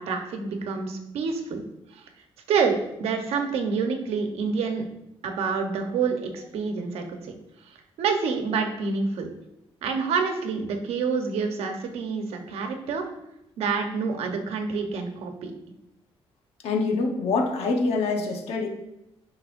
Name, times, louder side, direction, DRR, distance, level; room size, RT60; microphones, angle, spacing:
voice 1, 0.0-1.6 1.9-2.0 2.5-4.9 5.2-7.3 8.0-9.3 9.8-13.1 13.6-15.5, right 5 dB, 85° right, 4 dB, 1.0 m, -27 dB
voice 2, 16.6-18.7, left 3 dB, 80° left, 3 dB, 1.1 m, -25 dB
10.0 x 5.6 x 2.6 m, 0.86 s
cardioid pair, 165°, 10 cm